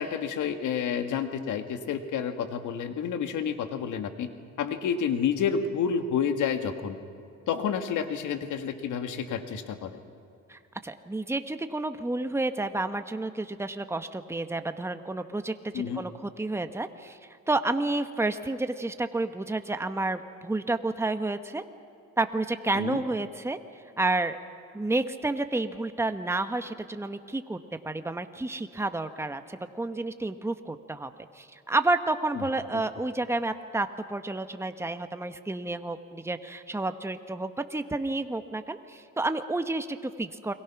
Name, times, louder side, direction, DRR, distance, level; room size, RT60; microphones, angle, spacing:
voice 1, 0.0-4.3 4.6-7.0 7.5-10.0 15.7-16.0 22.8-23.0 32.4-32.5 32.7-32.8, left 7 dB, 80° left, 7 dB, 1.9 m, -29 dB
voice 2, 10.5-17.2 17.5-21.6 22.2-23.6 24.0-24.4 24.7-27.6 27.8-40.5, right 2 dB, 10° right, 9 dB, 1.1 m, -30 dB
29.0 x 22.5 x 6.0 m, 2.4 s
cardioid pair, 90°, 30 cm